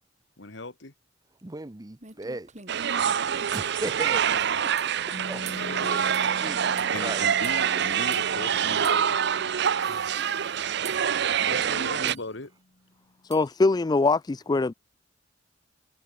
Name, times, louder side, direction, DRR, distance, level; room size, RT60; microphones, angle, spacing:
voice 1, 0.4-0.9 3.7-3.8 5.6-6.2 6.9-9.2 11.3-12.5, left 2 dB, 70° left, 2.1 m, -38 dB
voice 2, 1.4-2.5 3.4-4.2 5.3-5.5 5.8-6.1 6.4-7.2 9.8-10.3 11.4-11.7, right 2 dB, 20° right, 0.7 m, -37 dB
sound 1, 1.6-1.7 2.0-2.9 4.8-5.0 5.5-5.7 6.1-6.3 6.8-6.9 7.4-7.6 8.1-8.3 8.8-9.0 9.6-9.7 10.8-11.2 12.1-12.3 13.3-13.5, right 8 dB, 40° right, 7.0 m, -44 dB
sound 2, 2.7-12.1, right 8 dB, 60° right, 0.6 m, -26 dB
Piano, 5.1-12.4, left 1 dB, 50° left, 1.5 m, -45 dB
voice 3, 13.2-14.7, left 3 dB, 20° left, 0.4 m, -23 dB
head